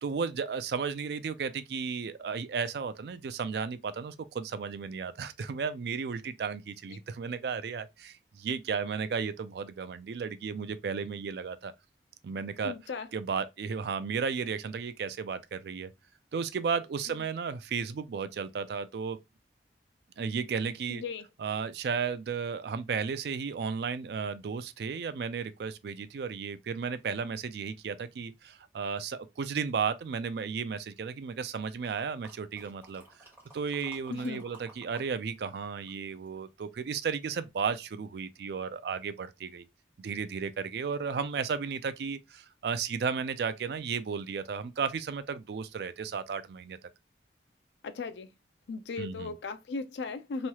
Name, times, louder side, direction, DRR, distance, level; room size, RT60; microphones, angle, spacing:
voice 1, 0.0-11.7 12.2-12.7 13.1-15.9 16.3-19.2 20.2-21.0 21.4-33.0 33.5-39.6 40.0-46.8 49.0-49.3, right 6 dB, 60° right, 0.3 m, -34 dB
voice 2, 12.6-13.1 20.9-21.3 34.1-34.4 47.8-48.3 48.7-50.5, left 4 dB, 80° left, 0.4 m, -37 dB
sound 1, 31.8-35.1 35.3-36.8 37.3-37.4, right 2 dB, 15° right, 1.3 m, -55 dB
3.1 x 2.3 x 2.8 m
head